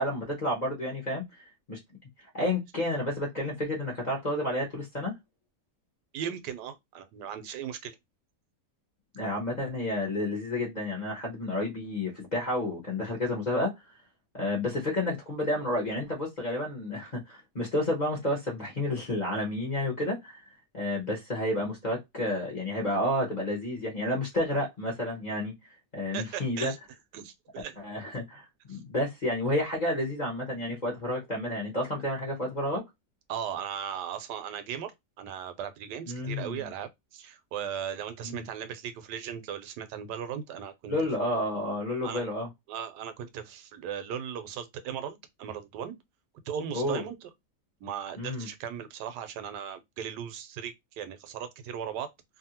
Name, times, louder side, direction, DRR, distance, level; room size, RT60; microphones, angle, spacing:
voice 1, 0.0-1.8 2.3-5.1 9.1-13.7 14.3-20.4 20.7-25.5 25.9-26.7 27.8-32.8 36.0-36.7 38.2-38.5 40.9-42.5 46.7-47.0 48.2-48.5, left 1 dB, 40° left, 0.7 m, -30 dB
voice 2, 6.1-8.0 26.1-26.8 27.1-27.8 28.7-28.8 33.3-34.9 35.2-41.0 42.0-42.3 42.7-46.0 46.5-47.3 47.8-52.1, right 8 dB, 85° right, 1.2 m, -37 dB
2.8 x 2.6 x 2.7 m
omnidirectional pair, 1.8 m